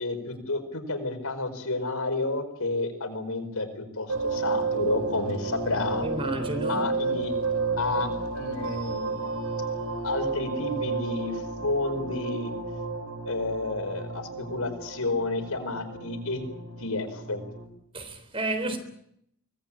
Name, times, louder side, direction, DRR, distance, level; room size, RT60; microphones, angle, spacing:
voice 1, 0.0-6.1 6.7-7.3 7.8-9.3 10.0-12.5 13.2-16.4 16.8-17.4, left 2 dB, 85° left, 4.9 m, -31 dB
sound 1, 4.1-17.7, right 3 dB, 80° right, 5.4 m, -32 dB
voice 2, 6.0-6.8 17.9-18.8, right 2 dB, 25° right, 3.7 m, -31 dB
24.0 x 18.5 x 8.8 m
head